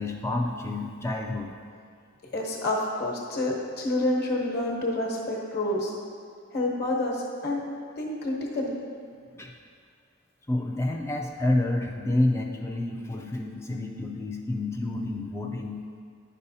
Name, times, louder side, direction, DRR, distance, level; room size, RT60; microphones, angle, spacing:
voice 1, 0.0-1.6 9.3-9.5 10.5-15.8, left 1 dB, 10° left, 1 dB, 0.3 m, -29 dB
voice 2, 2.3-5.9 6.5-7.6 8.0-8.8, left 1 dB, 45° left, -2 dB, 1.1 m, -28 dB
10.5 x 5.4 x 2.7 m, 2.2 s
head